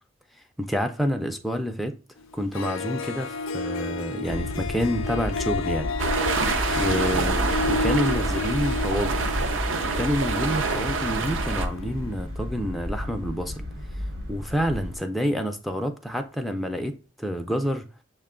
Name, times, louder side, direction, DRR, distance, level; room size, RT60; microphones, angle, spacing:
voice 1, 0.6-1.9 2.3-5.9 6.8-7.4 7.7-9.3 9.8-13.7 14.3-17.9, equal, ahead, 0.3 m, -28 dB
Harp, 2.2-2.3 2.5-12.0, left 3 dB, 80° left, 0.4 m, -32 dB
sound 1, 4.3-15.0, left 1 dB, 55° right, 1.0 m, -34 dB
sound 2, 6.0-11.7, right 3 dB, 75° right, 0.6 m, -26 dB
6.6 x 2.2 x 3.6 m
head